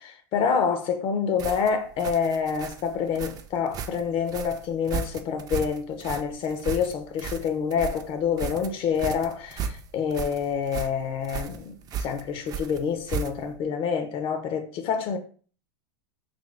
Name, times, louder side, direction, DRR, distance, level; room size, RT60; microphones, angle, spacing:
voice 1, 0.0-15.2, left 6 dB, 40° left, 0.5 m, -27 dB
sound 1, 1.4-13.6, right 6 dB, 25° right, 0.4 m, -35 dB
3.0 x 2.6 x 3.3 m
hypercardioid pair, 115°, 14 cm